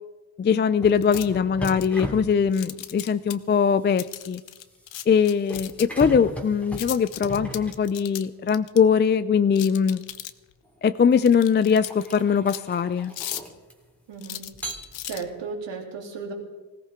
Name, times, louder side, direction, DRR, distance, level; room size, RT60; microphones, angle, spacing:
voice 1, 0.4-4.4 5.1-10.0 10.8-13.1, left 6 dB, 25° left, 13 dB, 0.4 m, -21 dB
sound 1, 0.8-8.4 9.8-10.0 10.6-14.0 14.5-15.4, right 1 dB, 5° left, 2.4 m, -38 dB
sound 2, 0.9-1.3 1.6-2.0 2.5-3.4 4.0-6.0 6.7-8.8 9.6-10.5 11.2-12.2 12.5-12.6 13.0-13.5 14.2-15.2, left 13 dB, 80° left, 0.9 m, -36 dB
voice 2, 14.1-14.4 15.0-16.3, right 5 dB, 75° right, 0 dB, 3.4 m, -34 dB
20.0 x 17.0 x 3.7 m, 1.2 s
cardioid pair, 105°, 45 cm